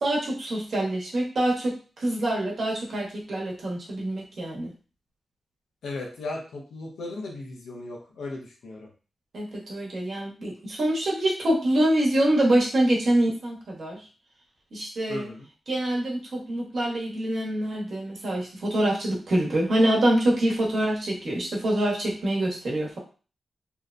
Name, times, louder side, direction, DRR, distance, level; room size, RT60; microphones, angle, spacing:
voice 1, 0.0-4.7 9.3-14.0 14.7-15.3 15.7-23.0, right 1 dB, 65° right, -2 dB, 1.0 m, -25 dB
voice 2, 5.8-8.9 15.1-15.5, left 2 dB, 90° left, -1 dB, 0.7 m, -36 dB
2.8 x 2.1 x 2.4 m, 0.36 s
cardioid pair, 60°, 0 cm